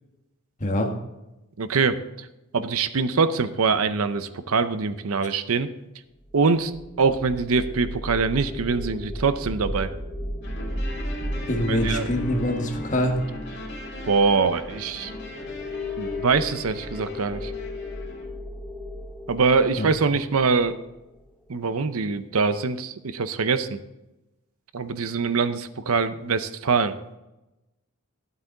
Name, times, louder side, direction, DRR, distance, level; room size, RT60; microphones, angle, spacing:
voice 1, 1.6-2.3 2.5-5.7 6.3-6.7 7.0-9.9 11.7-12.1 14.1-15.1 16.0-17.5 19.3-20.8 21.5-23.8 24.7-26.9, right 4 dB, 70° right, 12 dB, 0.6 m, -23 dB
sound 1, 6.3-21.5, left 1 dB, ahead, 0.8 m, -35 dB
sound 2, 10.4-18.3, left 1 dB, 50° left, 2.5 m, -38 dB
voice 2, 11.5-13.2 19.7-19.9, left 1 dB, 35° left, 2 dB, 1.5 m, -24 dB
12.5 x 8.2 x 3.9 m, 0.97 s
head